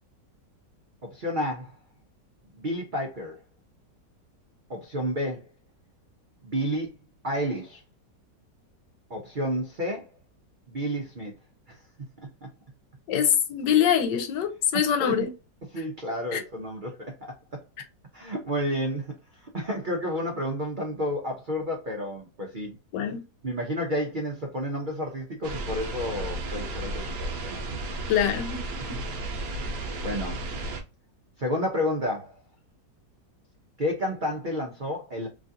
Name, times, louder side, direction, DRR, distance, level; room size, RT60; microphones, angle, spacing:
voice 1, 1.0-1.7 2.5-3.4 4.7-5.5 6.4-6.9 7.2-7.8 9.1-10.1 10.7-11.3 11.7-11.8 12.4-12.5 15.0-15.3 15.7-17.3 18.1-22.8 23.4-27.6 28.8-29.0 30.0-30.4 31.4-32.3 33.8-35.3, equal, 80° right, 0.4 m, -31 dB
voice 2, 13.1-15.3 16.3-16.4 22.9-23.2 28.1-28.6 28.9-29.0, left 9 dB, 80° left, 1.3 m, -24 dB
sound 1, 25.4-30.8, right 2 dB, 60° right, 1.1 m, -33 dB
3.1 x 2.5 x 2.6 m
omnidirectional pair, 1.9 m